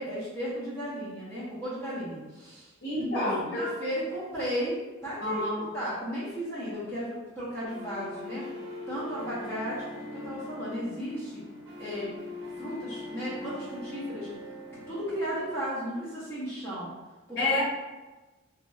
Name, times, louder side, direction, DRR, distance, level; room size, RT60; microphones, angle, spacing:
voice 1, 0.0-2.7 3.0-8.5 8.9-11.4 11.8-12.1 12.6-14.3 14.9-16.9 17.3-17.4, equal, 15° left, -12 dB, 1.0 m, -34 dB
voice 2, 2.8-3.6 5.2-5.7 17.4-17.6, left 2 dB, 55° left, -6 dB, 0.8 m, -28 dB
sound 1, 7.7-15.7, left 1 dB, 75° right, 0.6 m, -41 dB
2.8 x 2.7 x 2.3 m, 1.2 s
head